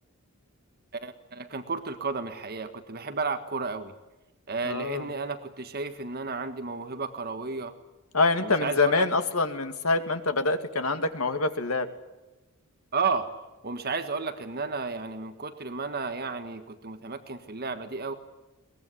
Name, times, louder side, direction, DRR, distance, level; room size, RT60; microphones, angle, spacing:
voice 1, 1.0-3.9 4.5-7.7 8.4-9.1 12.9-13.3 13.6-18.1, right 4 dB, 45° right, 8 dB, 1.6 m, -32 dB
voice 2, 4.6-5.1 8.1-11.9, left 3 dB, 85° left, 8 dB, 2.3 m, -25 dB
22.5 x 20.0 x 9.8 m, 1.1 s
head